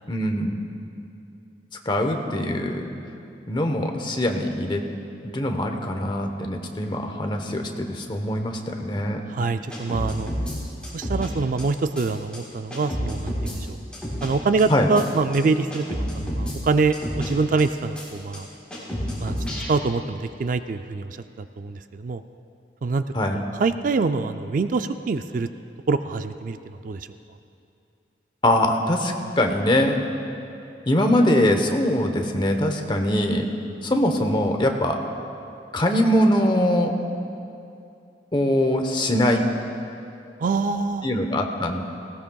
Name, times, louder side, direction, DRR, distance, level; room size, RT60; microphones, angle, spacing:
voice 1, 0.1-0.5 1.8-2.9 3.5-4.8 5.2-9.2 14.7-14.9 23.1-23.4 28.4-30.0 30.8-33.5 33.8-35.0 35.7-36.9 38.3-39.4 41.0-41.8, left 1 dB, 25° left, 4 dB, 0.9 m, -22 dB
voice 2, 9.3-10.3 10.9-13.8 14.2-18.5 19.2-19.3 19.7-22.2 22.8-23.0 23.3-25.5 25.9-27.1 40.4-41.1, right 4 dB, 50° right, 9 dB, 0.4 m, -25 dB
sound 1, 9.7-10.6 10.8-11.3 11.6-11.7 11.9-12.1 12.3-12.4 12.7-13.6 13.9-14.3 14.6-14.7 14.9-15.0 15.3-15.4 15.7-16.5 16.9-17.3 17.6-17.7 17.9-18.0 18.3-18.4 18.7-19.7, equal, 5° left, 3.7 m, -29 dB
19.0 x 17.0 x 2.3 m, 2.7 s
head